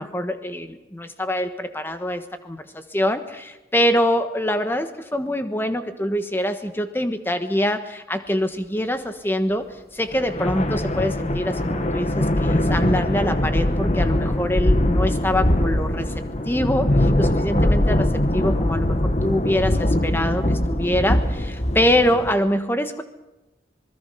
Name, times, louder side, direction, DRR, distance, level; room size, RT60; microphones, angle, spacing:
voice 1, 0.0-9.7 9.9-16.1 16.4-23.0, left 1 dB, 10° left, 8 dB, 1.3 m, -24 dB
sound 1, 10.1-22.3, left 1 dB, 40° left, 1.4 m, -22 dB
26.5 x 20.5 x 5.7 m, 1.0 s
head